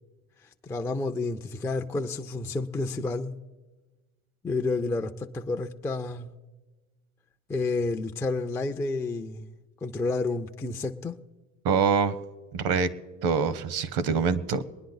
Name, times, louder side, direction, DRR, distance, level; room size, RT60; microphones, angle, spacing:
voice 1, 0.6-3.3 4.4-6.3 7.5-9.5 9.8-11.2, left 3 dB, 10° left, 0.3 m, -30 dB
voice 2, 11.6-12.1 12.5-12.9 13.2-14.6, right 6 dB, 60° right, 1.0 m, -24 dB
23.5 x 10.0 x 3.9 m
supercardioid pair, 110°, 40 cm